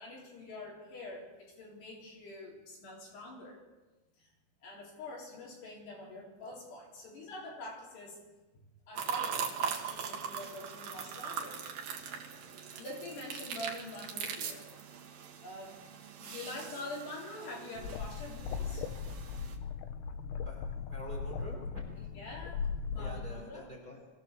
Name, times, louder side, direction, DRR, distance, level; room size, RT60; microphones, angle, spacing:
voice 1, 0.0-3.6 4.2-4.3 4.6-8.2 8.9-11.7 12.7-14.7 15.4-15.8 16.2-18.9 22.0-22.7 22.9-23.6, left 2 dB, 55° left, -2 dB, 5.5 m, -45 dB
sound 1, 8.9-19.6, right 7 dB, 60° right, 2.7 m, -41 dB
sound 2, 17.8-23.3, left 6 dB, 80° left, 2.4 m, -38 dB
voice 2, 20.4-22.1 22.9-24.1, equal, 20° right, -2 dB, 4.3 m, -47 dB
23.0 x 16.0 x 7.2 m, 1.2 s
omnidirectional pair, 5.9 m